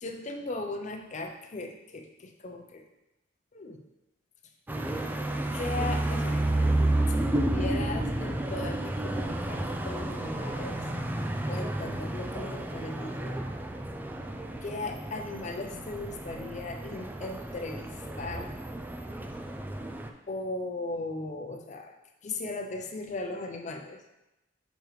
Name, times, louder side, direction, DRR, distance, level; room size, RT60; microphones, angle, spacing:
voice 1, 0.0-2.8 3.5-3.8 5.5-6.4 7.1-10.8 11.4-13.4 14.6-18.5 20.3-21.9 22.2-24.0, left 2 dB, 40° left, 3 dB, 0.5 m, -37 dB
sound 1, 4.7-20.1, right 1 dB, 10° right, 0.3 m, -31 dB
6.5 x 5.1 x 3.1 m, 0.95 s
head